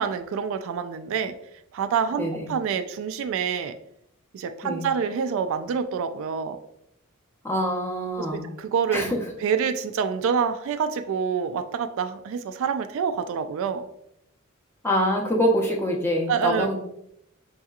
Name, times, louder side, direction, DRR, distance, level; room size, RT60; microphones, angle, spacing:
voice 1, 0.0-1.3 1.7-3.8 4.3-6.6 8.2-9.1 9.4-13.9 16.3-16.8, right 6 dB, 65° right, 9 dB, 0.3 m, -27 dB
voice 2, 2.2-2.5 4.6-4.9 7.4-8.4 8.9-9.2 14.8-16.8, equal, 10° left, 0 dB, 0.7 m, -25 dB
5.3 x 2.8 x 2.4 m, 0.76 s
head